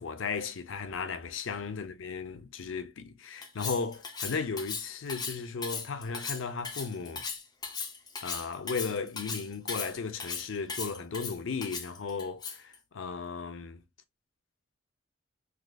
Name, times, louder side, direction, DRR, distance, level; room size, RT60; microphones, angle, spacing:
voice 1, 0.0-7.3 8.2-13.8, left 5 dB, 85° left, 0.6 m, -35 dB
Cutlery silverware, 3.4-12.7, left 5 dB, 20° left, 0.7 m, -37 dB
3.7 x 3.1 x 2.3 m
head